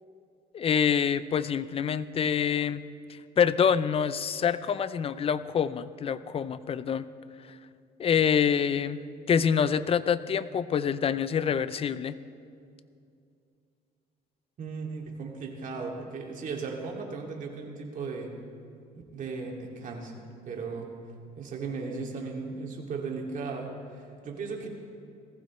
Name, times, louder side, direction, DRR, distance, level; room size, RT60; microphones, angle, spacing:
voice 1, 0.5-2.8 3.1-7.1 8.0-9.0 9.3-12.2, left 7 dB, 35° left, 15 dB, 0.5 m, -26 dB
voice 2, 14.6-18.3 19.1-20.1 20.5-20.9 21.4-24.7, right 4 dB, 50° right, 0 dB, 2.4 m, -36 dB
19.0 x 15.0 x 3.2 m, 2.4 s
cardioid pair, 110°, 17 cm